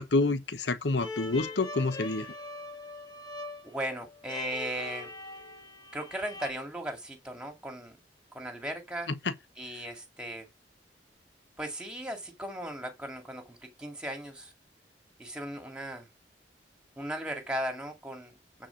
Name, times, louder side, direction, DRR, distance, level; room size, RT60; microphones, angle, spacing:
voice 1, 0.0-2.3 9.1-9.3, left 3 dB, 75° left, 0.9 m, -28 dB
sound 1, 1.0-6.5, left 2 dB, 25° left, 1.7 m, -42 dB
voice 2, 3.6-5.1 5.9-8.0 8.3-9.1 9.6-10.5 11.6-14.5 15.2-16.1 17.0-18.4, right 1 dB, 5° right, 2.1 m, -37 dB
8.8 x 4.3 x 5.6 m
head